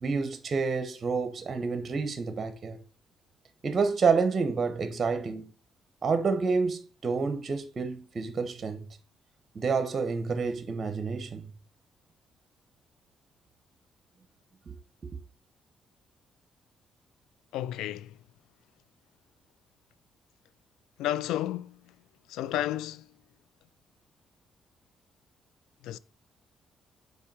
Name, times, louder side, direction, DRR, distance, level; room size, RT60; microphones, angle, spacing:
voice 1, 0.0-2.8 3.6-5.5 6.0-8.9 9.5-11.5 14.7-14.8 15.0-15.1, right 4 dB, 45° right, 1.0 m, -29 dB
voice 2, 17.5-18.1 21.0-21.8 22.3-23.1 25.8-26.0, left 13 dB, 90° left, 0.3 m, -31 dB
5.5 x 4.7 x 4.8 m
cardioid pair, 75°, 0 cm